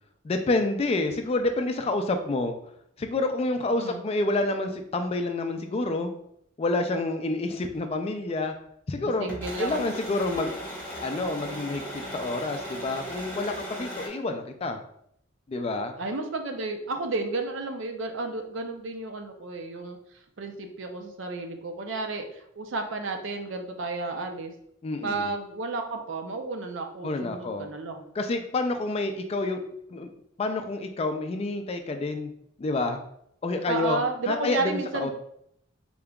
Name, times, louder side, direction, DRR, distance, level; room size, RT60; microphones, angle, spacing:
voice 1, 0.2-2.5 3.0-6.1 6.6-8.5 8.9-9.3 9.6-10.6 11.0-11.9 12.1-14.8 15.5-15.9 24.8-25.3 27.0-27.7 28.1-29.6 29.9-30.1 30.4-32.3 32.6-33.0 33.4-35.1, left 2 dB, 30° left, 7 dB, 0.3 m, -28 dB
voice 2, 9.2-10.0 16.0-20.0 20.4-24.5 25.0-28.0 33.7-35.1, right 3 dB, 70° right, 5 dB, 0.6 m, -32 dB
sound 1, 9.3-14.1, equal, 10° left, 1.2 m, -37 dB
3.8 x 3.5 x 2.3 m, 0.71 s
head